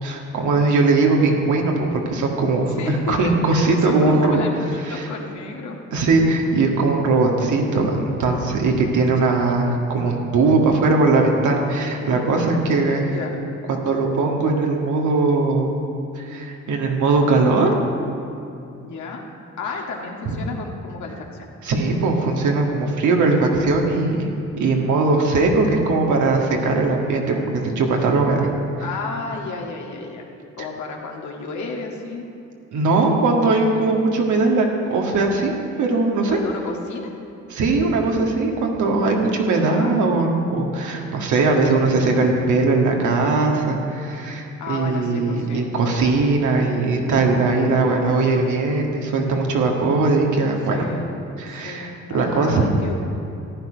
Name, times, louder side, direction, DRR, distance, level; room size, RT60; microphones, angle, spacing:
voice 1, 0.0-4.4 4.9-5.1 5.9-13.1 13.7-15.7 16.2-17.7 20.3-20.4 21.6-28.5 32.7-35.5 35.8-36.4 37.5-50.9 51.4-52.7, right 3 dB, 75° right, 0 dB, 1.9 m, -20 dB
voice 2, 2.7-5.8 9.2-9.6 13.0-13.4 18.8-19.2 19.6-21.5 28.8-30.3 30.6-32.3 36.3-37.1 39.4-39.9 44.6-45.6 48.0-48.2 50.7-51.1 51.5-53.0, left 4 dB, 70° left, 0 dB, 1.8 m, -32 dB
14.5 x 10.0 x 5.2 m, 2.6 s
cardioid pair, 90°, 30 cm